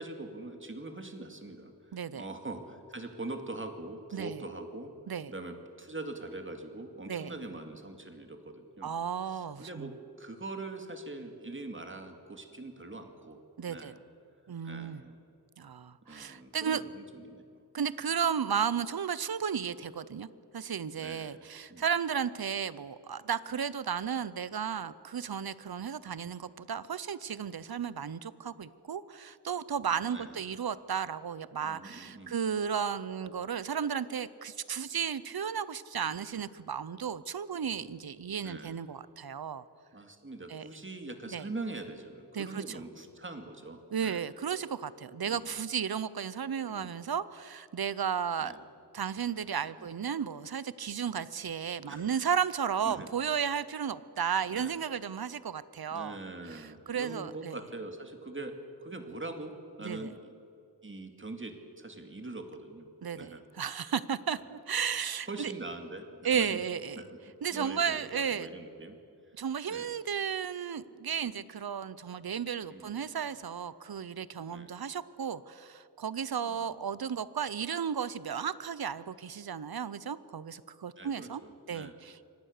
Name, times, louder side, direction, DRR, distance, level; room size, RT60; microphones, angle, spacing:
voice 1, 0.0-4.9 5.3-8.9 9.3-9.9 10.2-13.4 13.7-14.0 14.6-15.2 16.1-17.6 21.0-21.4 21.7-21.8 30.0-30.4 31.6-32.3 38.4-38.8 39.9-44.3 45.2-45.5 46.7-46.9 48.4-48.6 49.8-49.9 51.9-52.1 52.8-53.1 54.5-54.7 55.9-58.5 58.8-59.5 59.8-60.3 60.8-62.9 63.1-63.4 65.3-66.6 66.9-67.2 67.5-69.0 69.7-70.0 72.7-73.3 74.5-74.7 76.4-76.8 81.0-81.9, right 2 dB, 30° right, 5 dB, 2.3 m, -43 dB
voice 2, 1.9-2.2 4.1-4.4 5.1-5.3 7.1-7.3 8.8-9.9 13.6-13.9 14.5-15.0 15.6-16.8 17.7-20.3 20.5-39.6 40.5-40.7 41.3-41.5 42.3-42.6 43.9-48.5 48.9-56.2 56.5-57.6 59.8-60.1 63.0-65.5 66.2-67.0 67.4-68.5 69.4-81.4 81.7-82.3, right 7 dB, 65° right, 17 dB, 0.8 m, -34 dB
24.5 x 18.0 x 6.7 m, 2.7 s
wide cardioid pair, 90°, 40 cm